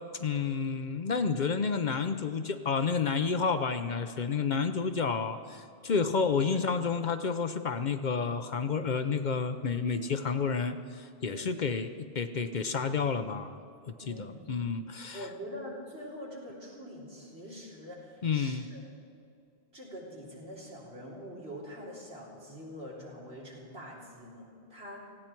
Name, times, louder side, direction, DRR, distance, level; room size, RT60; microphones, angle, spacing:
voice 1, 0.2-13.6 14.1-14.2 14.5-15.2 18.2-18.6, left 5 dB, 50° left, 9 dB, 0.7 m, -30 dB
voice 2, 11.2-11.6 14.0-14.5 15.1-18.8 19.7-25.1, equal, 80° right, -4 dB, 3.8 m, -44 dB
18.5 x 15.5 x 4.5 m, 2.4 s
omnidirectional pair, 1.1 m